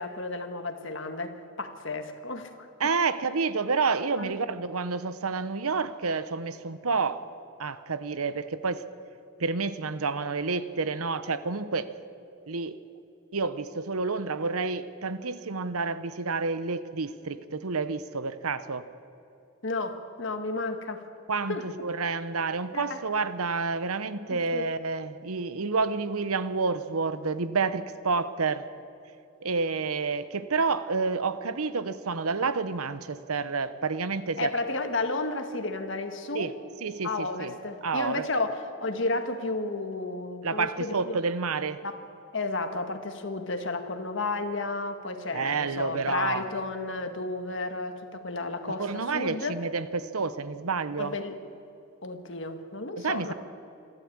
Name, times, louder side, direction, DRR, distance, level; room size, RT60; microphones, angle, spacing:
voice 1, 0.0-2.7 4.2-4.3 19.6-21.0 21.5-21.6 22.7-23.0 24.5-24.7 34.4-36.5 37.0-41.2 41.8-42.0 42.3-49.6 51.0-51.3 52.0-53.3, left 2 dB, 55° left, 1.7 m, -32 dB
voice 2, 2.8-7.3 7.6-8.9 9.4-12.0 12.5-12.8 13.3-18.9 21.3-28.7 29.4-34.5 36.3-37.5 37.8-38.2 40.4-41.8 45.3-46.4 48.8-51.2 53.0-53.3, right 4 dB, 85° right, 0.9 m, -29 dB
25.5 x 13.0 x 8.7 m
head